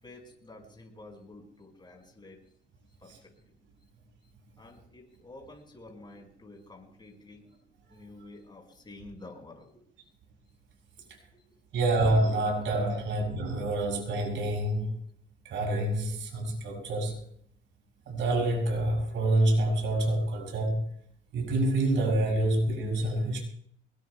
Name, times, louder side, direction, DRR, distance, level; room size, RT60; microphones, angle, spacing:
voice 1, 0.0-2.4 3.0-3.5 4.6-7.5 7.9-9.9 11.0-11.6 12.9-13.1, left 2 dB, 25° left, 5.2 m, -50 dB
voice 2, 11.7-15.0 15.5-17.2 18.1-20.9 21.3-23.5, right 1 dB, 75° right, 6.9 m, -27 dB
23.5 x 20.0 x 2.3 m
cardioid pair, 90°, 20 cm